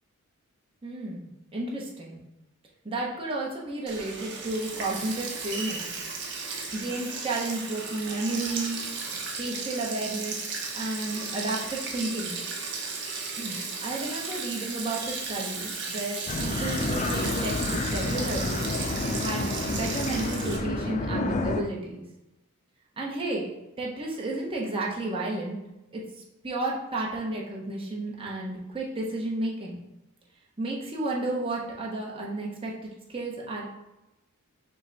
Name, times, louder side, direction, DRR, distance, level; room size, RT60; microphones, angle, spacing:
voice 1, 0.8-2.2 2.8-6.0 6.7-8.8 9.2-10.4 10.7-12.4 13.3-18.7 19.2-22.0 23.0-23.5 23.8-25.6 25.9-29.8 30.6-33.7, right 2 dB, 25° right, -3 dB, 0.9 m, -32 dB
Sink (filling or washing), 3.9-20.6, right 4 dB, 55° right, 0.8 m, -35 dB
sound 1, 16.3-21.6, left 2 dB, 30° left, 0.4 m, -29 dB
6.0 x 2.2 x 3.9 m, 0.94 s
head